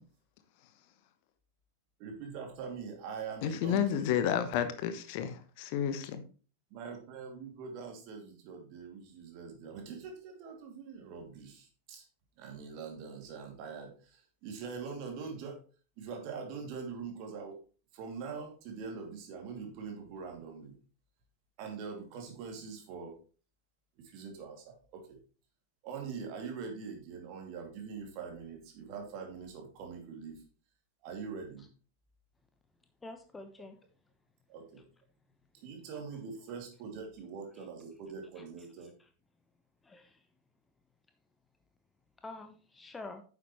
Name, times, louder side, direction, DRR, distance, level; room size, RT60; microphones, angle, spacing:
voice 1, 2.0-4.1 6.7-12.0 12.4-15.6 16.0-17.6 17.9-20.8 21.6-23.1 24.0-25.2 25.8-30.4 31.0-31.7 34.5-34.8 35.5-38.9, right 5 dB, 45° right, 3 dB, 2.7 m, -43 dB
voice 2, 3.4-6.2, left 9 dB, 45° left, 10 dB, 1.0 m, -31 dB
voice 3, 33.0-33.8 39.8-40.2 42.2-43.2, left 2 dB, 15° left, 7 dB, 0.9 m, -46 dB
9.7 x 7.2 x 3.1 m, 0.37 s
figure-of-eight pair, 90°, 0 cm